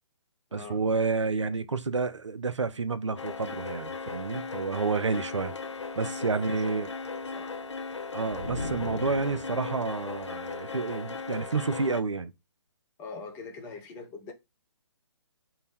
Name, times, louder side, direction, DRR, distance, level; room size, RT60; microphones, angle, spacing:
voice 1, 0.5-5.5 6.0-6.9 8.1-12.3, right 4 dB, 75° right, 0.5 m, -29 dB
sound 1, 3.2-12.0, left 4 dB, 70° left, 0.6 m, -37 dB
voice 2, 6.0-6.8 7.3-7.6 13.0-14.3, left 4 dB, 15° left, 0.7 m, -43 dB
sound 2, 8.3-9.9, left 2 dB, 40° left, 1.1 m, -38 dB
3.8 x 2.2 x 4.2 m
figure-of-eight pair, 135°, 16 cm